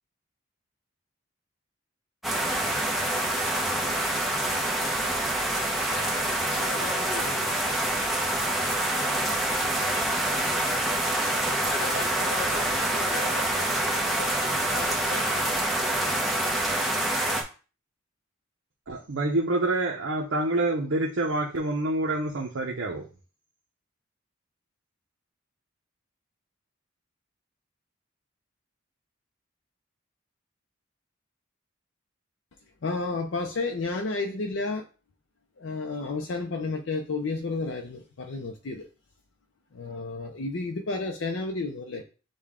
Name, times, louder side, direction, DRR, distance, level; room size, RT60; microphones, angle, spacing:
sound 1, 2.2-17.4, right 1 dB, ahead, 0.7 m, -26 dB
voice 1, 6.2-7.5 11.6-15.5, left 3 dB, 90° left, 4 dB, 0.9 m, -39 dB
voice 2, 18.9-23.0, right 2 dB, 65° right, -1 dB, 0.7 m, -27 dB
voice 3, 32.8-34.8 35.6-38.8 39.7-42.0, left 3 dB, 65° left, 3 dB, 0.5 m, -31 dB
6.5 x 2.2 x 3.6 m, 0.35 s
head